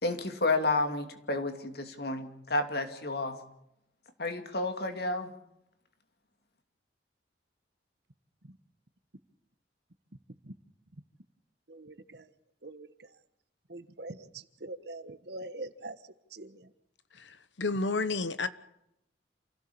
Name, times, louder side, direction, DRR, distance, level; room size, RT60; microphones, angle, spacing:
voice 1, 0.0-3.4 4.2-5.3, left 2 dB, 55° left, 7 dB, 2.7 m, -31 dB
voice 2, 11.7-12.2 12.6-12.9 13.7-14.2 14.6-16.0 16.3-16.6, right 2 dB, 60° right, 12 dB, 1.4 m, -42 dB
voice 3, 17.2-18.5, left 3 dB, 75° left, 13 dB, 1.1 m, -31 dB
28.0 x 16.5 x 7.1 m, 0.80 s
head